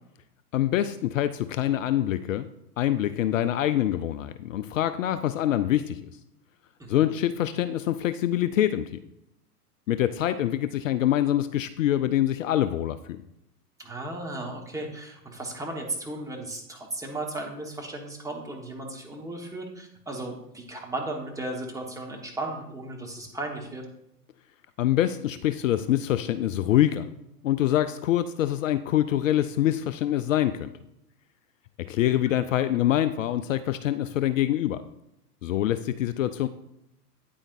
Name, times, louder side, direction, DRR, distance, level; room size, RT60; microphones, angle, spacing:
voice 1, 0.5-2.5 2.8-6.0 6.9-9.0 9.9-13.2 24.8-27.1 27.4-30.7 31.8-34.8 35.4-36.5, left 12 dB, 55° left, 12 dB, 0.5 m, -25 dB
voice 2, 13.8-23.8 32.3-32.4, right 2 dB, 5° right, 0 dB, 1.2 m, -35 dB
9.2 x 8.7 x 2.6 m, 0.84 s
hypercardioid pair, 110°, 47 cm